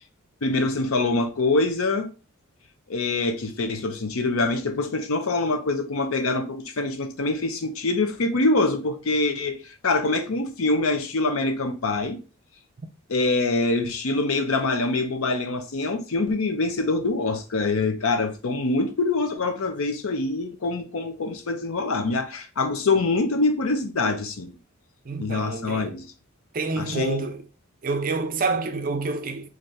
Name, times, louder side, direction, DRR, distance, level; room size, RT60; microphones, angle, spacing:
voice 1, 0.4-2.1 2.9-12.2 13.1-24.6 25.2-26.1 26.8-27.3, left 3 dB, 70° left, 0.6 m, -25 dB
voice 2, 25.1-25.9 26.5-27.4 27.8-29.5, right 3 dB, 40° right, 0.4 m, -28 dB
3.3 x 2.6 x 3.9 m
head